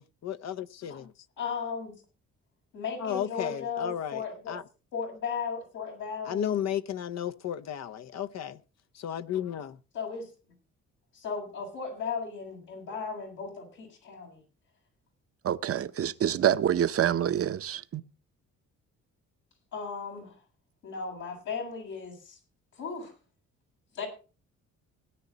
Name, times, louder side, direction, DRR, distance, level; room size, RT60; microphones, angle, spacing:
voice 1, 0.0-1.1 3.0-4.2 4.5-4.6 6.3-8.6 8.9-9.8, left 10 dB, 60° left, 0.8 m, -33 dB
voice 2, 1.4-1.9 2.7-4.6 4.9-6.6 9.9-10.3 11.1-14.4 19.7-20.3 20.8-22.4 22.7-23.1 23.9-24.1, left 5 dB, 85° left, 7.3 m, -36 dB
voice 3, 15.4-18.0, right 10 dB, 50° right, 0.8 m, -26 dB
17.5 x 9.8 x 4.1 m
cardioid pair, 90°, 30 cm